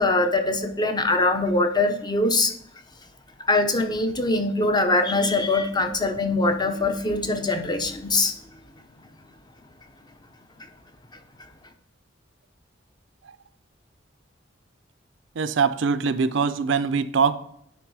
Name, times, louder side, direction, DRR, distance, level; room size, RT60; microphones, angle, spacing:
voice 1, 0.0-2.5 3.4-8.3, left 2 dB, 20° left, 6 dB, 0.7 m, -22 dB
voice 2, 15.4-17.4, right 5 dB, 70° right, 13 dB, 0.5 m, -22 dB
9.6 x 3.5 x 4.7 m, 0.69 s
head